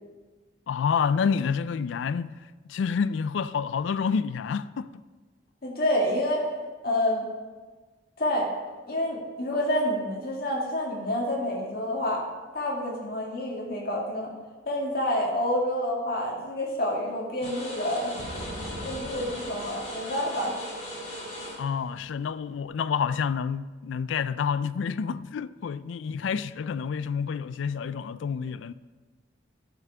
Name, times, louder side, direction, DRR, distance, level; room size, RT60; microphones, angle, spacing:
voice 1, 0.7-2.3 2.7-4.9 21.6-28.7, left 6 dB, 75° left, 0.3 m, -28 dB
voice 2, 5.6-6.5 6.8-7.3 8.2-8.5 8.9-12.2 12.5-14.3 14.7-18.2 18.8-20.6, left 1 dB, 50° left, 2.1 m, -28 dB
sound 1, 17.4-22.6, equal, 35° left, 2.9 m, -38 dB
sound 2, 18.2-20.4, equal, 20° right, 2.7 m, -41 dB
11.0 x 5.5 x 4.8 m
head